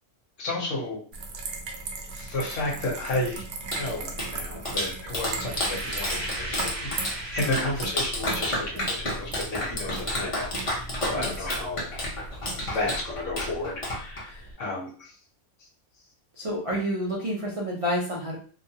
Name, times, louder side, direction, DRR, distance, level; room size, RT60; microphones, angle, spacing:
voice 1, 0.4-1.0 2.1-3.4 3.7-11.8 12.6-14.3 14.6-14.9, left 2 dB, 60° left, -2 dB, 1.1 m, -32 dB
sound 1, 1.1-13.0, right 3 dB, 85° right, 1.1 m, -38 dB
Clapping, 3.4-14.5, left 1 dB, 30° left, 0.6 m, -32 dB
sound 2, 5.4-8.1, right 2 dB, 45° right, 0.8 m, -37 dB
voice 2, 11.1-11.5 14.3-14.5 16.4-18.4, equal, 60° right, -5 dB, 0.3 m, -30 dB
2.8 x 2.3 x 2.7 m, 0.42 s
omnidirectional pair, 1.5 m